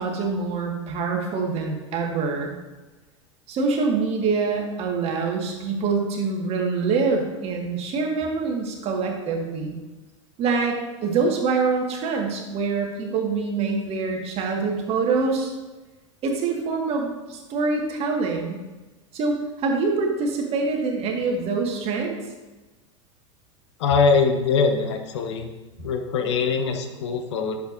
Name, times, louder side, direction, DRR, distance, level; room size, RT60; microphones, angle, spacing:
voice 1, 0.0-2.6 3.5-9.8 10.4-15.5 16.2-18.6 19.1-22.2, right 4 dB, 40° right, 1 dB, 1.8 m, -25 dB
voice 2, 23.8-25.5 25.8-27.6, left 5 dB, 65° left, 4 dB, 1.0 m, -22 dB
11.0 x 7.1 x 2.7 m, 1.2 s
figure-of-eight pair, 85°, 16 cm